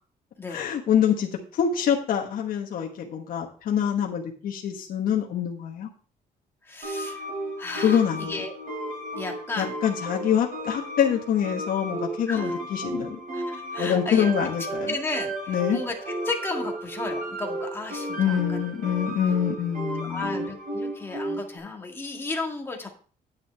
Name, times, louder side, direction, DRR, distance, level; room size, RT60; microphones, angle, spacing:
voice 1, 0.5-5.9 7.8-8.4 9.6-13.2 13.8-14.9 15.5-15.8 18.2-20.4, left 8 dB, 65° left, 1 dB, 1.3 m, -25 dB
voice 2, 6.6-7.3 7.6-8.5 9.1-9.7 12.3-12.6 13.3-14.3 14.9-18.6 20.0-22.9, left 3 dB, 15° left, 1 dB, 1.9 m, -34 dB
sound 1, 6.8-21.6, right 1 dB, 60° right, 3.6 m, -33 dB
9.6 x 9.1 x 3.4 m, 0.40 s
cardioid pair, 155°, 16 cm